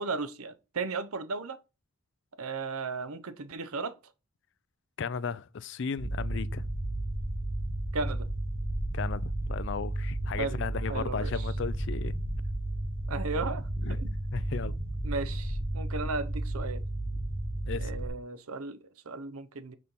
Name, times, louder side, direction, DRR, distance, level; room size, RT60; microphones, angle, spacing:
voice 1, 0.0-1.6 2.4-4.0 7.9-8.3 10.4-10.6 10.9-11.4 13.1-13.6 14.0-14.1 15.0-16.8 17.8-19.8, right 4 dB, 75° right, 0.8 m, -35 dB
voice 2, 5.0-6.7 8.9-12.1 13.8-14.0 14.3-14.7 17.7-17.9, left 5 dB, 55° left, 0.4 m, -35 dB
sound 1, 6.0-18.1, right 1 dB, 60° right, 2.1 m, -33 dB
6.3 x 4.3 x 5.4 m
head